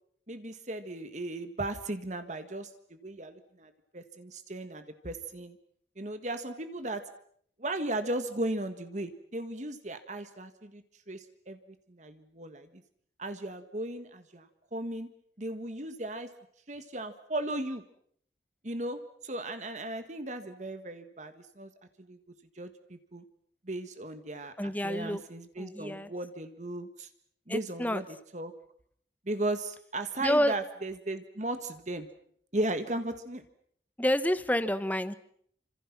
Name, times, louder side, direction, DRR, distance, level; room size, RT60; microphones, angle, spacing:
voice 1, 0.3-5.6 6.0-7.0 7.6-12.8 13.2-15.1 15.4-16.3 16.7-17.8 18.6-21.7 22.0-22.2 22.5-23.2 23.6-27.1 27.5-28.5 29.2-32.1 32.5-33.4, right 1 dB, 40° right, 9 dB, 1.7 m, -36 dB
voice 2, 24.6-25.2 25.6-26.1 27.5-28.0 30.2-30.5 34.0-35.2, equal, 10° left, 13 dB, 1.1 m, -28 dB
29.5 x 26.5 x 6.0 m, 0.65 s
head